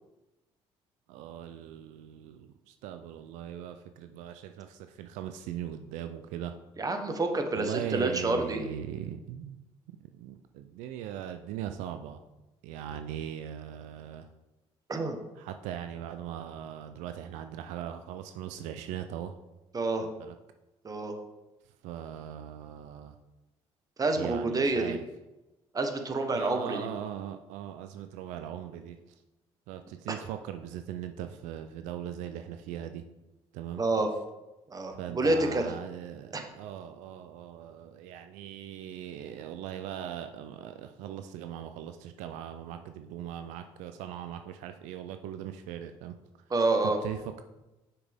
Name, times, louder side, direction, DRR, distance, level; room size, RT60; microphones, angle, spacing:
voice 1, 1.1-6.5 7.5-9.6 10.1-12.2 12.6-14.3 15.4-19.3 20.2-20.3 21.8-23.2 24.2-25.0 26.3-29.0 29.7-33.0 33.5-33.8 34.9-46.1 46.8-47.4, right 10 dB, 85° right, 8 dB, 0.4 m, -39 dB
voice 2, 6.8-8.6 14.9-15.2 19.7-20.1 20.8-21.2 24.0-25.0 25.7-26.9 33.8-34.1 34.7-35.7 36.3-36.5 46.5-47.0, right 2 dB, 30° right, 5 dB, 1.1 m, -28 dB
6.3 x 6.0 x 3.5 m, 1.0 s
supercardioid pair, 75°, 12 cm